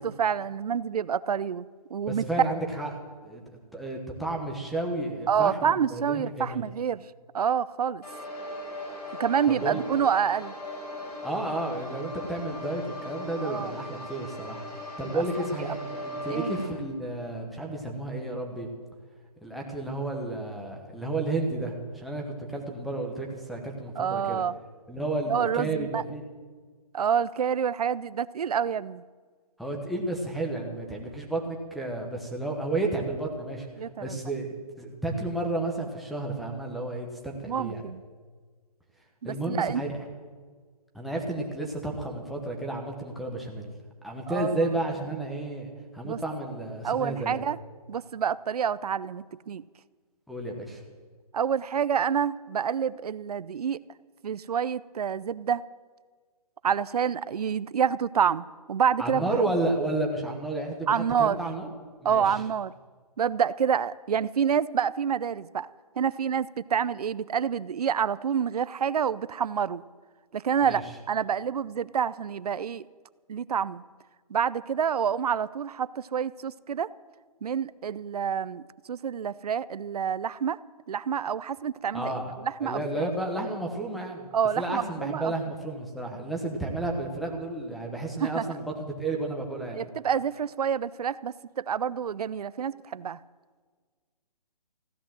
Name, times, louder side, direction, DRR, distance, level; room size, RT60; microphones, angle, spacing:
voice 1, 0.0-1.7 1.9-2.2 5.3-7.0 7.3-8.0 9.2-10.6 13.4-13.7 15.0-15.2 16.3-16.6 24.0-24.6 25.3-26.0 26.9-29.0 33.8-34.2 37.5-38.0 39.2-39.8 44.3-44.6 46.0-46.2 46.8-47.6 47.9-49.6 51.3-53.8 54.2-55.6 56.6-59.3 60.9-61.4 62.0-62.7 63.2-65.7 66.0-69.8 70.3-72.8 73.3-73.8 74.3-76.9 77.4-78.6 78.9-80.6 80.9-82.1 82.6-83.1 84.3-85.3 88.2-88.5 89.7-93.2, right 7 dB, 70° right, 18 dB, 0.6 m, -28 dB
voice 2, 2.1-2.9 3.2-3.4 3.7-6.7 9.5-9.8 11.1-14.6 15.0-18.7 19.4-24.4 24.9-26.2 29.6-34.5 34.8-37.8 39.2-39.9 40.9-43.7 44.0-47.4 50.3-50.8 59.0-61.7 62.0-62.4 70.6-70.8 81.9-82.3 82.6-84.3 84.6-89.9, right 2 dB, ahead, -2 dB, 1.1 m, -32 dB
sound 1, 8.0-16.7, left 1 dB, 90° left, 6.3 m, -39 dB
15.5 x 11.0 x 7.6 m, 1.5 s
hypercardioid pair, 160°, 20 cm